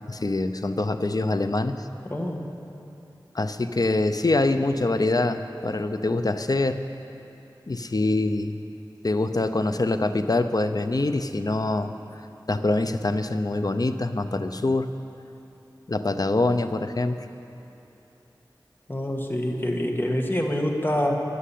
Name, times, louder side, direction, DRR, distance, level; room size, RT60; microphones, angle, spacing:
voice 1, 0.1-1.8 3.3-6.8 7.7-8.6 9.0-11.9 12.5-14.9 15.9-17.3, left 2 dB, 50° left, 9 dB, 0.7 m, -24 dB
voice 2, 2.1-2.5 18.9-21.2, left 1 dB, 25° left, 1 dB, 1.8 m, -26 dB
13.0 x 11.0 x 8.5 m, 2.8 s
wide cardioid pair, 50°, 8 cm